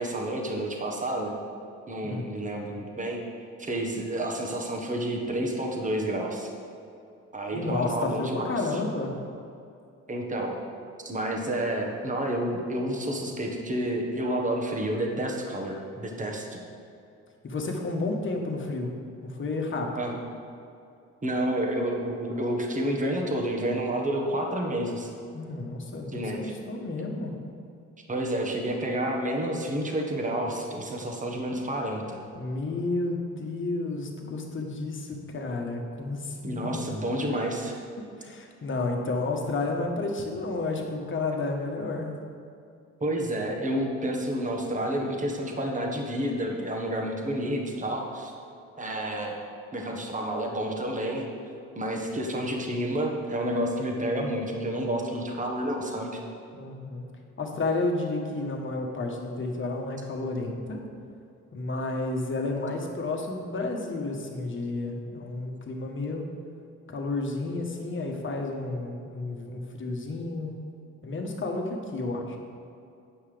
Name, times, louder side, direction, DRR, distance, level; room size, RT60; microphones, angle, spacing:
voice 1, 0.0-1.3 1.9-3.2 3.6-6.5 7.3-8.8 10.1-10.6 11.0-16.6 20.0-20.2 21.2-25.1 26.1-26.5 28.1-32.2 36.4-37.7 43.0-48.3 48.8-49.3 49.7-51.3 51.7-56.2, right 1 dB, 25° right, 1 dB, 1.3 m, -30 dB
voice 2, 7.5-9.1 17.4-18.9 19.2-20.2 25.3-27.3 32.3-36.7 38.2-42.1 56.5-57.1 57.4-60.8 61.5-66.3 66.9-70.6 71.0-72.4, left 2 dB, 40° left, 1 dB, 1.3 m, -31 dB
9.0 x 5.7 x 5.1 m, 2.5 s
cardioid pair, 90°, 30 cm